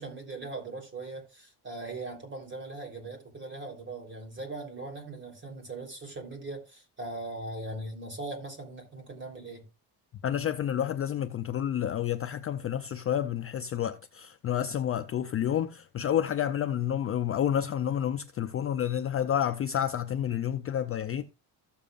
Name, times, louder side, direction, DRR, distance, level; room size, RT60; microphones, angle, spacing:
voice 1, 0.0-9.6 21.1-21.2, right 2 dB, 25° right, 3.6 m, -40 dB
voice 2, 10.2-21.2, left 10 dB, 35° left, 0.4 m, -29 dB
14.5 x 7.1 x 2.4 m
cardioid pair, 160°, 43 cm